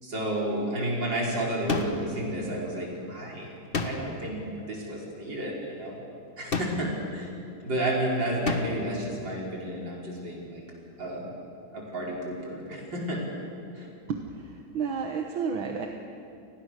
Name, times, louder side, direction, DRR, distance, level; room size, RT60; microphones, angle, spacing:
voice 1, 0.0-3.5 3.8-4.4 4.7-6.0 6.4-7.3 7.6-10.6 11.0-11.3 11.7-13.2 13.7-13.9, right 1 dB, 60° right, -3 dB, 5.6 m, -31 dB
sound 1, 1.7-2.2 3.7-4.3 6.5-7.1 8.4-8.9, left 4 dB, 30° left, 1.4 m, -31 dB
voice 2, 14.1-15.9, right 6 dB, 80° right, 3 dB, 2.1 m, -31 dB
29.5 x 20.5 x 6.6 m, 2.6 s
omnidirectional pair, 2.2 m